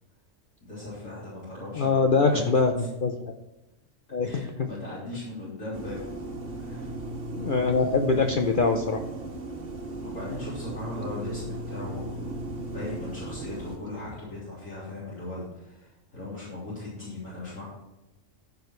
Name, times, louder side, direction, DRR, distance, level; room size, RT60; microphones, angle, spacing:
voice 1, 0.6-2.4 2.8-2.9 4.2-6.1 6.6-6.9 10.0-17.7, left 2 dB, 70° left, -9 dB, 3.9 m, -38 dB
voice 2, 1.8-3.2 4.1-4.7 7.4-9.0, left 4 dB, 50° left, 3 dB, 0.7 m, -23 dB
sound 1, 5.7-13.8, right 1 dB, 65° right, 2.0 m, -36 dB
14.5 x 5.0 x 4.6 m, 0.96 s
omnidirectional pair, 1.4 m